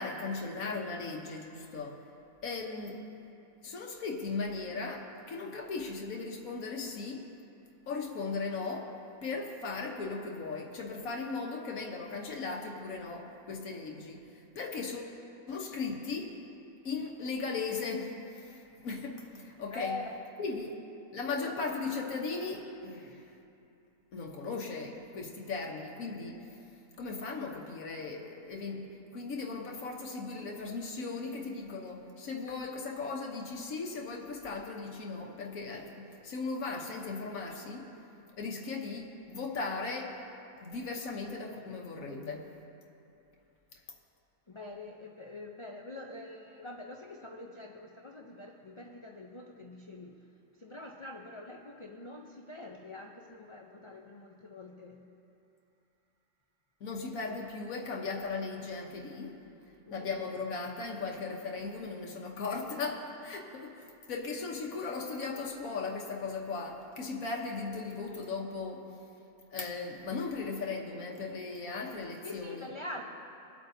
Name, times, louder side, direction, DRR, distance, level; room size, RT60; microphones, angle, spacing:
voice 1, 0.0-2.0 2.4-3.0 3.6-7.3 7.9-9.0 9.2-15.2 15.5-16.4 16.8-20.0 20.4-20.8 21.1-23.2 24.1-26.5 27.0-37.9 38.4-40.2 40.6-42.5 56.8-59.4 59.9-68.9 69.5-72.7, left 4 dB, 85° left, 0 dB, 1.5 m, -37 dB
voice 2, 19.7-20.2 44.5-50.2 50.6-55.0 59.9-60.1 72.2-73.1, left 2 dB, 40° left, 1 dB, 0.4 m, -44 dB
25.0 x 8.4 x 2.7 m, 2.8 s
omnidirectional pair, 1.4 m